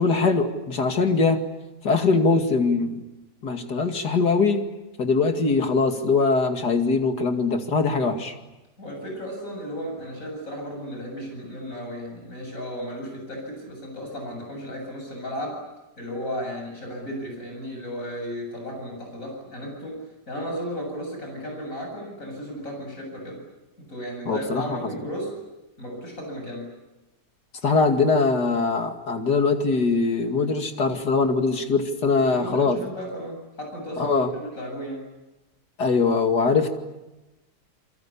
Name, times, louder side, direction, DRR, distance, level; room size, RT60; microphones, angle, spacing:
voice 1, 0.0-1.4 1.8-3.0 3.4-4.6 5.0-8.3 24.3-24.8 27.6-32.8 34.0-34.3 35.8-36.7, left 4 dB, 75° left, 5 dB, 3.0 m, -22 dB
voice 2, 8.8-15.6 16.0-20.0 20.3-23.4 23.9-25.3 25.8-26.7 32.1-35.1, equal, 50° left, 1 dB, 8.1 m, -34 dB
29.0 x 23.5 x 8.6 m, 1.0 s
omnidirectional pair, 1.8 m